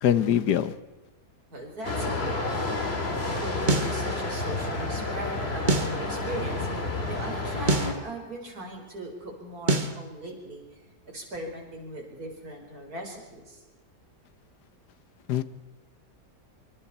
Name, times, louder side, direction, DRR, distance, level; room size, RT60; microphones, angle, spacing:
voice 1, 0.0-0.7 15.3-15.4, left 10 dB, 75° left, 14 dB, 1.5 m, -23 dB
voice 2, 1.5-2.8 3.4-13.6, right 1 dB, 60° right, 1 dB, 5.2 m, -39 dB
sound 1, 1.8-7.9, left 2 dB, 35° left, 2.9 m, -30 dB
sound 2, 3.7-4.0 5.7-6.0 7.7-8.0 9.7-10.0, right 3 dB, 30° right, 1.4 m, -24 dB
26.0 x 24.5 x 4.3 m, 1.1 s
omnidirectional pair, 1.8 m